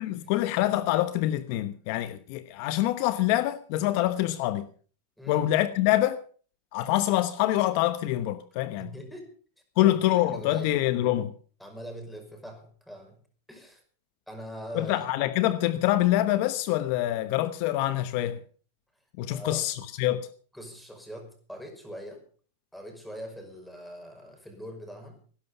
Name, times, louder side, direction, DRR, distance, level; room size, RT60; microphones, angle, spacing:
voice 1, 0.0-4.7 5.3-6.2 6.7-8.9 9.8-11.3 14.7-18.4 19.2-20.3, left 14 dB, 55° left, 1.0 m, -25 dB
voice 2, 5.2-5.5 8.8-9.3 9.8-10.8 11.6-13.2 13.5-13.8 14.3-15.0 19.3-19.6 20.5-22.2 22.7-25.2, equal, ahead, 5.3 m, -42 dB
18.0 x 11.5 x 5.5 m
supercardioid pair, 135°, 0 cm